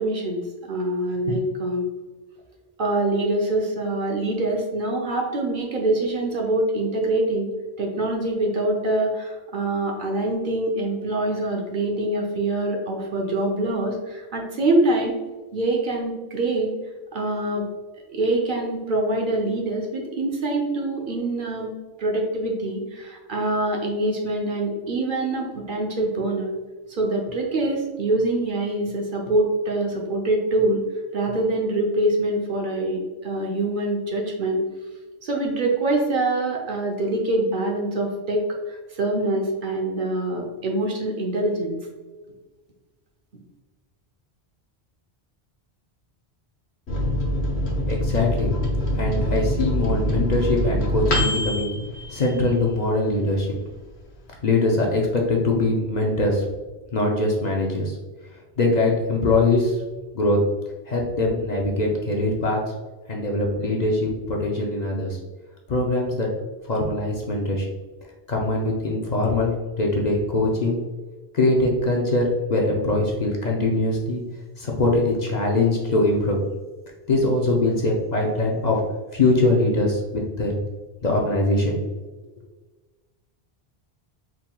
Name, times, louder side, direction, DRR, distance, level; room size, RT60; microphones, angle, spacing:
voice 1, 0.0-1.9 2.8-7.5 7.8-15.2 15.5-16.7 17.1-17.7 18.1-21.7 22.0-26.5 26.9-30.8 31.1-34.6 35.2-41.8, right 2 dB, 55° right, 0 dB, 0.8 m, -24 dB
Microwave oven, 46.9-53.0 53.4-53.5 53.7-54.3, equal, 85° left, 1.0 m, -25 dB
voice 2, 47.9-48.5 49.0-51.7 52.1-53.5 54.4-56.5 56.9-58.0 58.6-59.8 60.1-60.4 60.9-62.6 63.1-65.2 65.7-66.3 66.6-67.7 68.3-70.8 71.3-74.2 74.6-76.4 77.1-78.8 79.1-80.6 81.0-81.9, left 2 dB, 50° left, -1 dB, 0.6 m, -22 dB
4.4 x 3.6 x 2.2 m, 1.3 s
omnidirectional pair, 1.1 m